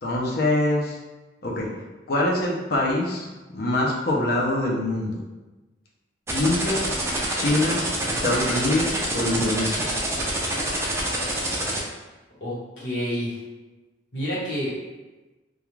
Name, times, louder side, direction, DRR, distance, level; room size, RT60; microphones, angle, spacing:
voice 1, 0.0-1.0 1.4-1.7 2.1-3.3 3.5-5.2 6.3-6.9 7.3-7.8 8.1-9.9, left 1 dB, 50° left, -3 dB, 0.5 m, -24 dB
sound 1, 6.3-11.8, right 1 dB, 15° right, 0.3 m, -26 dB
voice 2, 11.1-11.7 12.4-13.4 14.1-14.8, equal, 80° left, -8 dB, 1.2 m, -30 dB
2.3 x 2.2 x 3.1 m, 1.2 s
head